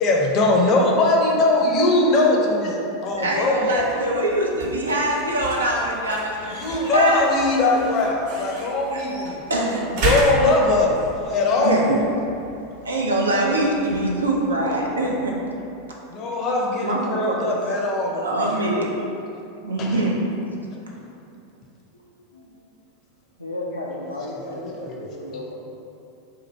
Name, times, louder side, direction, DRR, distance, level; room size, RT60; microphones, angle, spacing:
voice 1, 0.0-3.8 6.5-9.4 10.0-10.9 11.2-11.9 16.1-18.5 19.8-20.0 24.8-25.3, left 2 dB, 40° left, -1 dB, 0.6 m, -21 dB
sound 1, 3.1-15.9, right 3 dB, 60° right, 1.1 m, -34 dB
voice 2, 3.2-6.6 6.9-7.2 9.5-9.8 11.6-12.0 12.8-15.3 16.8-17.4 18.2-18.9 19.6-20.2, right 1 dB, 80° right, -2 dB, 0.5 m, -23 dB
voice 3, 23.4-25.5, left 1 dB, 90° left, -2 dB, 0.5 m, -34 dB
2.8 x 2.6 x 4.3 m, 2.7 s
figure-of-eight pair, 85°, 0 cm